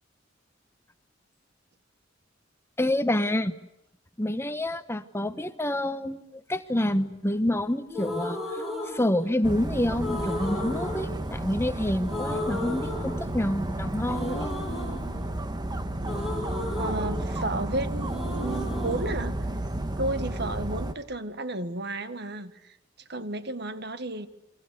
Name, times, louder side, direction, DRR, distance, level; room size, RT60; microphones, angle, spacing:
voice 1, 2.8-3.5 4.2-8.4 8.9-14.8 16.1-16.2, left 1 dB, 15° left, 11 dB, 1.1 m, -28 dB
sound 1, 7.9-9.6 10.0-11.8 12.0-13.6 14.0-17.7 18.0-20.0, left 1 dB, ahead, 7.3 m, -35 dB
Dog, 9.4-20.9, right 1 dB, 20° right, 1.5 m, -32 dB
voice 2, 16.8-19.5 20.0-22.8 23.1-24.3, right 2 dB, 60° right, 11 dB, 1.6 m, -32 dB
29.5 x 23.5 x 8.3 m, 0.81 s
head